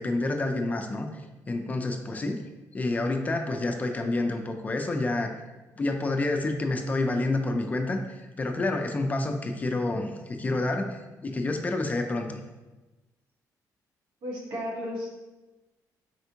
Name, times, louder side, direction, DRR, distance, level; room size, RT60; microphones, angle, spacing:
voice 1, 0.0-2.5 2.7-5.3 5.8-12.4, left 2 dB, 25° left, 4 dB, 0.3 m, -29 dB
voice 2, 14.2-15.2, equal, 80° right, -2 dB, 1.1 m, -34 dB
4.3 x 3.4 x 2.8 m, 1.1 s
cardioid pair, 140°, 7 cm